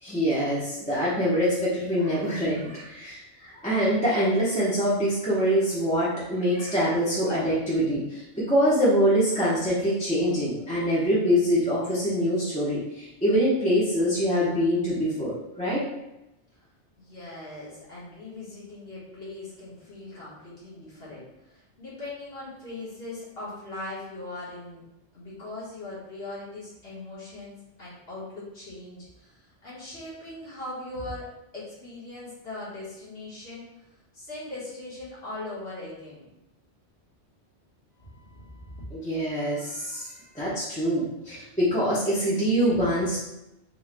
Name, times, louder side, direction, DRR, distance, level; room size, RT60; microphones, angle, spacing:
voice 1, 0.0-8.2 8.5-15.9 38.9-40.1 40.3-43.2, equal, 5° left, -9 dB, 1.0 m, -24 dB
voice 2, 17.0-24.8 25.1-31.3 31.5-33.7 34.1-36.3 38.0-38.8, left 2 dB, 60° left, -8 dB, 1.9 m, -40 dB
4.4 x 3.8 x 2.2 m, 0.89 s
omnidirectional pair, 1.2 m